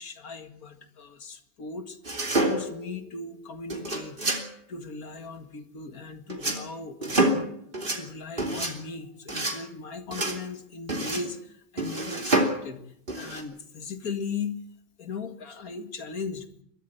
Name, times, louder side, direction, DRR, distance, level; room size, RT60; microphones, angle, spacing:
voice 1, 0.0-2.0 2.4-4.3 4.7-7.5 7.9-12.8 13.1-14.6 15.0-16.5, left 4 dB, 50° left, 9 dB, 2.2 m, -38 dB
sound 1, 2.0-2.9 3.7-4.5 6.3-6.6 7.0-7.5 7.7-8.0 8.4-8.7 9.3-9.6 10.1-10.4 10.9-11.3 11.8-12.6 13.1-13.4, right 2 dB, 25° right, 3.1 m, -27 dB
22.5 x 13.5 x 9.3 m, 0.71 s
omnidirectional pair, 2.0 m